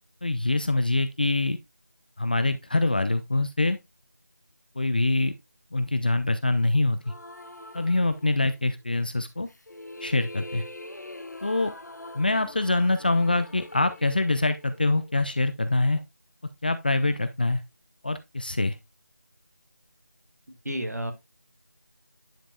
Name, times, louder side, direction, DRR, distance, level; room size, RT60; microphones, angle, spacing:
voice 1, 0.2-1.6 2.2-3.8 4.8-5.3 5.7-7.0 7.7-9.5 10.0-10.6 11.4-11.7 12.1-16.0 16.6-17.6 18.0-18.8, left 2 dB, 30° left, 0.4 m, -24 dB
sound 1, 7.0-8.8 9.5-15.6, left 1 dB, 75° left, 1.0 m, -44 dB
voice 2, 20.5-21.1, equal, 70° right, 1.9 m, -32 dB
10.0 x 5.2 x 2.3 m
figure-of-eight pair, 165°, 9 cm